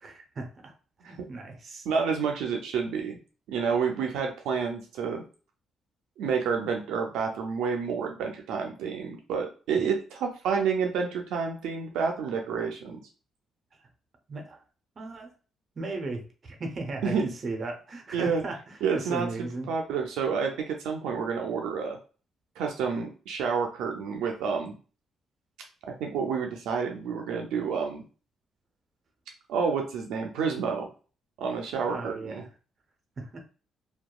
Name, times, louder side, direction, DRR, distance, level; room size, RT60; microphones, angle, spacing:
voice 1, 0.0-0.7 1.1-1.9 14.3-14.6 15.0-15.3 15.8-19.7 31.9-32.5 33.2-33.4, right 3 dB, 45° right, 4 dB, 0.7 m, -36 dB
voice 2, 1.9-3.2 3.5-5.2 6.2-13.0 17.0-17.3 18.1-18.4 18.8-22.0 22.6-24.7 25.9-28.0 29.5-30.9 31.4-32.4, right 6 dB, 90° right, 3 dB, 0.4 m, -29 dB
2.7 x 2.2 x 2.3 m, 0.36 s
cardioid pair, 90°, 0 cm